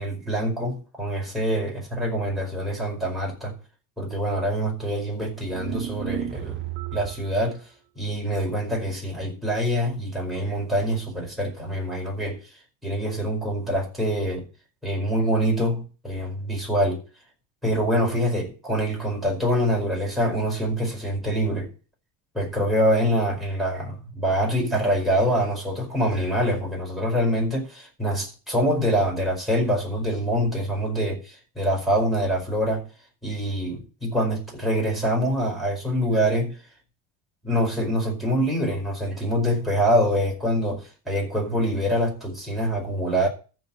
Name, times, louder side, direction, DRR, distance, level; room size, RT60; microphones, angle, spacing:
voice 1, 0.0-3.6 4.0-6.6 6.9-7.6 8.0-12.4 12.8-14.5 14.8-17.0 17.6-21.7 22.3-32.9 33.2-36.6 37.4-43.3, equal, ahead, 4.9 m, -25 dB
sound 1, 5.5-7.3, right 10 dB, 35° right, 1.7 m, -32 dB
14.0 x 4.7 x 8.5 m
cardioid pair, 145°, 34 cm